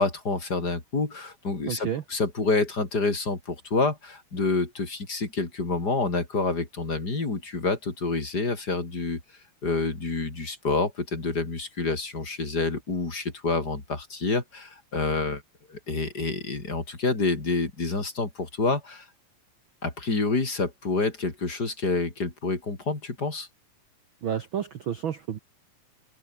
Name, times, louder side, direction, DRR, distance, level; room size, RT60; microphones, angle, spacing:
voice 1, 0.0-9.2 9.6-15.4 15.7-19.1 19.8-23.5, left 3 dB, 25° left, 4.4 m, -28 dB
voice 2, 1.7-2.0 24.2-25.4, right 9 dB, 85° right, 1.1 m, -30 dB
open air
omnidirectional pair, 4.0 m